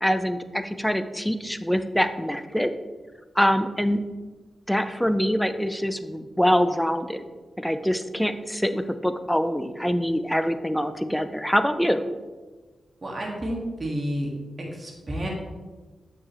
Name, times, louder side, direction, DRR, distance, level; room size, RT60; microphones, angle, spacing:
voice 1, 0.0-2.7 3.4-4.0 4.7-7.2 7.6-12.0, equal, 5° left, 10 dB, 0.5 m, -24 dB
voice 2, 13.0-14.3 14.6-15.3, equal, 35° right, -2 dB, 1.8 m, -30 dB
7.9 x 6.4 x 3.1 m, 1.3 s
cardioid pair, 55°, 0 cm